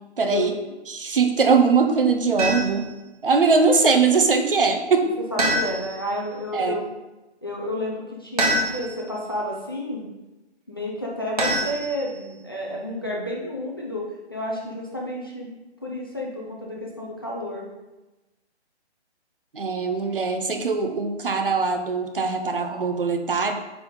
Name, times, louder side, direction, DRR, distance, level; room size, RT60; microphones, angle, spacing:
voice 1, 0.2-0.5 0.9-2.9 3.2-5.1 6.5-6.8 19.5-23.6, right 4 dB, 50° right, 5 dB, 0.8 m, -21 dB
sound 1, 2.4-2.9 5.4-6.1 8.4-9.1 11.4-12.3, right 1 dB, 35° right, 1.3 m, -25 dB
voice 2, 5.3-6.9 7.4-10.1 10.7-15.5 15.8-17.7, left 1 dB, 20° left, -4 dB, 0.6 m, -31 dB
9.1 x 3.6 x 3.9 m, 1.1 s
hypercardioid pair, 165°, 34 cm